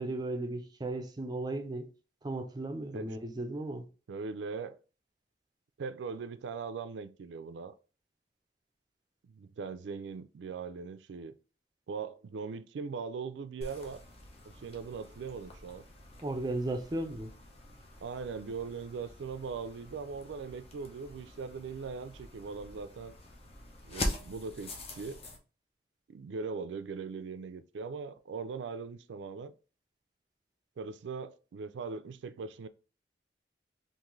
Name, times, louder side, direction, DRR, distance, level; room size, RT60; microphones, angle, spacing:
voice 1, 0.0-1.9 2.2-3.9 16.2-17.3, right 2 dB, 25° right, 0.5 m, -35 dB
voice 2, 4.1-4.8 5.8-7.7 9.3-11.3 11.9-14.0 14.5-15.8 18.0-23.2 23.8-25.2 26.1-29.5 30.8-32.7, right 5 dB, 90° right, 0.4 m, -40 dB
sound 1, 13.6-25.4, left 1 dB, 35° left, 0.7 m, -44 dB
3.7 x 2.5 x 3.1 m
head